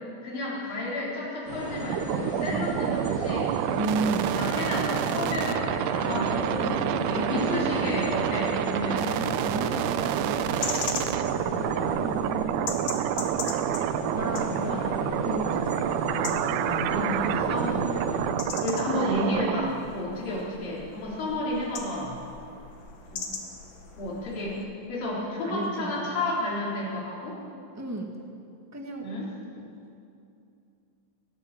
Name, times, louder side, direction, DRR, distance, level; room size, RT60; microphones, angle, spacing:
voice 1, 0.2-3.5 4.4-9.3 10.8-11.0 11.5-11.6 14.1-14.3 14.6-14.8 16.6-17.7 18.6-22.2 23.1-23.3 24.0-24.6 24.9-27.4 29.0-29.3, left 1 dB, 75° left, -6 dB, 5.6 m, -32 dB
sound 1, 1.5-18.3, right 1 dB, 40° right, 3.6 m, -34 dB
sound 2, 1.9-19.7, right 12 dB, 80° right, 2.0 m, -29 dB
voice 2, 3.8-4.3 6.5-8.0 8.9-10.5 11.6-12.7 14.1-15.9 17.6-17.9 25.1-26.2 27.7-28.2 28.7-29.1, right 2 dB, 10° right, 1 dB, 0.8 m, -34 dB
sound 3, 10.6-24.7, left 5 dB, 55° left, 2.9 m, -40 dB
29.0 x 13.0 x 7.5 m, 2.6 s
omnidirectional pair, 4.0 m